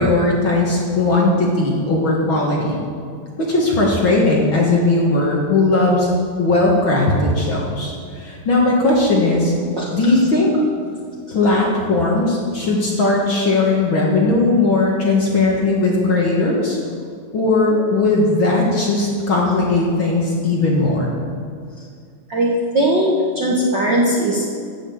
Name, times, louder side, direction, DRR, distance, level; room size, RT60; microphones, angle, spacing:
voice 1, 0.0-2.8 3.4-6.1 6.4-9.5 9.9-10.5 11.3-16.8 17.3-21.1, left 2 dB, 45° left, -2 dB, 2.0 m, -18 dB
voice 2, 9.7-10.2 22.3-24.4, right 1 dB, 50° right, -4 dB, 1.5 m, -20 dB
15.5 x 6.4 x 7.2 m, 2.2 s
omnidirectional pair, 3.7 m